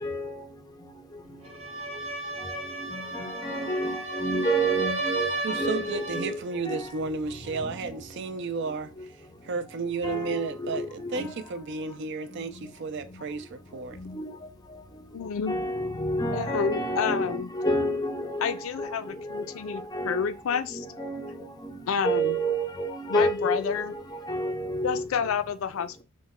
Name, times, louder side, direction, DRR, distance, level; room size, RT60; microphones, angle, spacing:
voice 1, 0.0-0.4 2.9-6.4 6.7-6.9 7.5-7.9 10.0-11.3 14.0-14.3 15.5-20.3 20.7-21.3 21.6-24.0 24.2-25.1, right 1 dB, 20° left, 0.5 m, -30 dB
sound 1, 1.4-6.4, right 2 dB, 30° right, 0.7 m, -33 dB
voice 2, 5.4-9.2 9.4-14.0, right 4 dB, 60° right, 0.4 m, -33 dB
voice 3, 15.1-15.5 16.3-17.5 18.4-20.9 21.9-22.4 23.1-23.9 24.8-26.0, left 7 dB, 80° left, 0.4 m, -29 dB
3.1 x 2.1 x 3.5 m
head